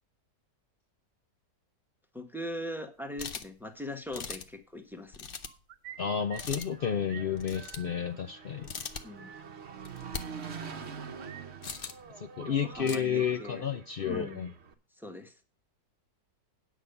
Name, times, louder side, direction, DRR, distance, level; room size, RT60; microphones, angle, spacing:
voice 1, 2.1-5.3 9.0-9.3 12.5-13.6 14.0-14.4 15.0-15.3, left 1 dB, ahead, 5 dB, 1.1 m, -40 dB
sound 1, 3.2-3.6 4.1-4.6 5.1-5.5 6.3-6.7 7.4-7.9 8.6-9.0 9.8-10.2 11.6-12.0 12.7-13.0, left 5 dB, 45° left, 0.8 m, -40 dB
sound 2, 5.4-6.8 7.1-7.3 7.5-8.5 8.8-8.9 9.2-9.4 11.2-12.6 12.9-13.7, right 9 dB, 75° right, 1.5 m, -50 dB
Engine, 5.9-14.7, right 6 dB, 45° right, 1.1 m, -46 dB
voice 2, 6.0-8.7 12.2-14.5, left 7 dB, 75° left, 7 dB, 0.5 m, -31 dB
9.4 x 6.2 x 6.7 m, 0.32 s
omnidirectional pair, 1.9 m